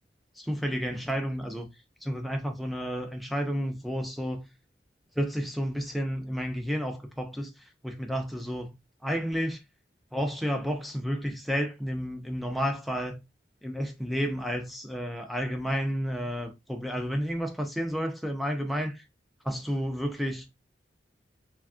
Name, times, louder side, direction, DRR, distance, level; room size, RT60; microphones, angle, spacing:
voice 1, 0.4-1.7 2.0-4.4 5.2-8.7 9.0-9.6 10.1-13.2 13.6-19.0 19.4-20.5, equal, ahead, 0.5 m, -31 dB
3.3 x 2.2 x 2.4 m
head